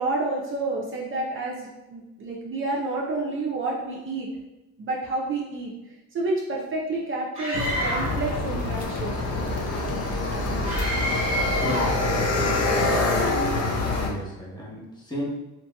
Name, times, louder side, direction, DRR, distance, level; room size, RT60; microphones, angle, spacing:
voice 1, 0.0-4.3 4.8-5.7 6.1-9.2, right 2 dB, 45° right, -2 dB, 0.5 m, -29 dB
Screaming, 7.4-8.2 10.6-12.0, equal, 20° right, 1.1 m, -29 dB
sound 1, 7.5-14.1, left 2 dB, 55° left, 0.6 m, -25 dB
voice 2, 11.6-13.2 13.5-15.3, equal, 15° left, -6 dB, 1.0 m, -35 dB
2.9 x 2.7 x 2.2 m, 1.0 s
cardioid pair, 90°, 30 cm